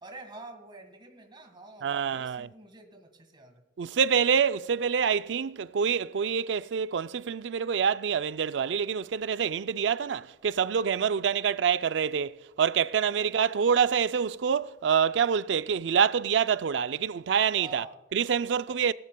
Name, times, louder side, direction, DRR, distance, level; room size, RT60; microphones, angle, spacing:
voice 1, 0.0-3.6 13.1-13.3 17.6-18.0 18.7-18.8, right 2 dB, 25° right, 1.7 m, -47 dB
voice 2, 1.8-2.5 3.8-17.8 18.1-18.9, right 7 dB, 70° right, 0.4 m, -26 dB
18.5 x 13.0 x 2.2 m
head